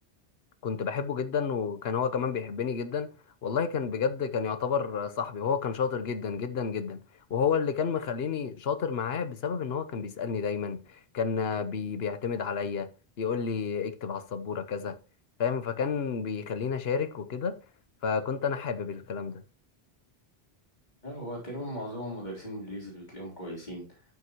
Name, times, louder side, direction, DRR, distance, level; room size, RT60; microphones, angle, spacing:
voice 1, 0.6-3.1 3.4-7.0 7.3-12.9 13.2-14.9 15.4-17.6 18.0-19.4, left 6 dB, 70° left, 1.1 m, -30 dB
voice 2, 21.0-23.8, equal, 45° left, 3.8 m, -38 dB
12.0 x 6.5 x 3.0 m
omnidirectional pair, 1.1 m